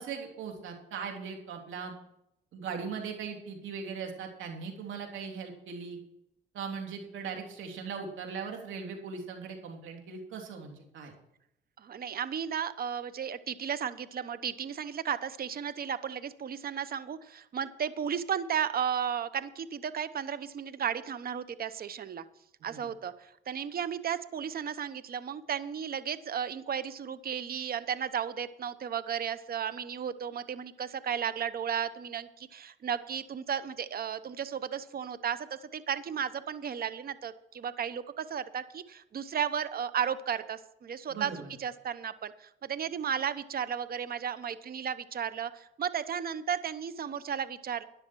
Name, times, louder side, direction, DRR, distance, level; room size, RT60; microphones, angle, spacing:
voice 1, 0.0-1.9 2.5-6.0 6.5-11.1 22.7-22.9 41.1-41.5, right 5 dB, 80° right, 2 dB, 3.4 m, -39 dB
voice 2, 11.8-22.2 22.6-47.8, right 8 dB, 50° right, 14 dB, 0.9 m, -34 dB
13.0 x 10.5 x 4.6 m, 0.80 s
cardioid pair, 90°, 20 cm